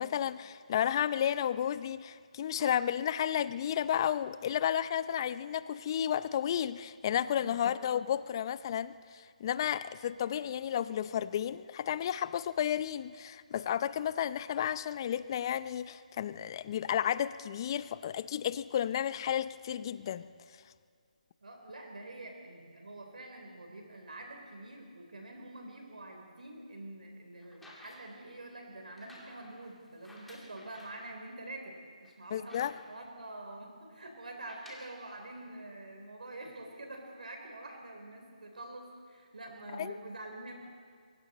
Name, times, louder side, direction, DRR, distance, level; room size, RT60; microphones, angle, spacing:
voice 1, 0.0-20.3 32.3-32.7 39.8-39.9, left 10 dB, 35° left, 15 dB, 0.7 m, -32 dB
voice 2, 7.3-7.8 21.4-40.5, right 2 dB, 75° right, 2 dB, 3.8 m, -46 dB
sound 1, 27.4-28.2 28.9-31.1 31.6-31.7 32.0-33.1 34.3-35.0 35.9-36.0, left 1 dB, 5° left, 2.2 m, -55 dB
28.0 x 22.5 x 4.3 m, 2.1 s
figure-of-eight pair, 155°, 4 cm